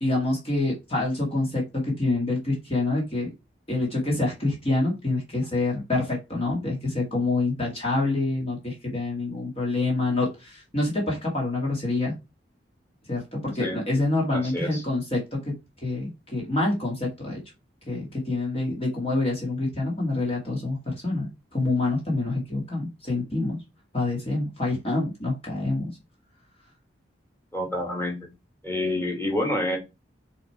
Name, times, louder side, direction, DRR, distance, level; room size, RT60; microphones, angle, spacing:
voice 1, 0.0-3.3 3.7-12.1 13.1-15.6 15.8-17.4 17.9-23.6 23.9-25.9, left 2 dB, 30° left, -2 dB, 1.9 m, -26 dB
voice 2, 14.3-14.8 27.5-28.2 28.6-29.8, left 1 dB, 10° left, 1 dB, 2.2 m, -28 dB
6.2 x 3.5 x 4.6 m, 0.25 s
head